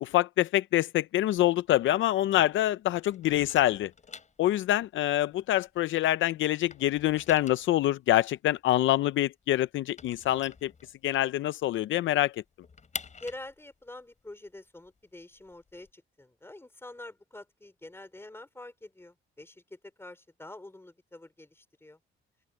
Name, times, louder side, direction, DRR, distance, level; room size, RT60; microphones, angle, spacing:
voice 1, 0.0-3.9 4.4-10.7 11.0-12.3, left 14 dB, 75° left, 0.6 m, -26 dB
sound 1, 1.2-2.6 2.9-6.1 6.4-11.4 11.8-11.9 12.2-15.9, left 5 dB, 35° left, 5.7 m, -47 dB
voice 2, 13.2-22.0, left 2 dB, 10° left, 3.7 m, -46 dB
open air
cardioid pair, 90°, 20 cm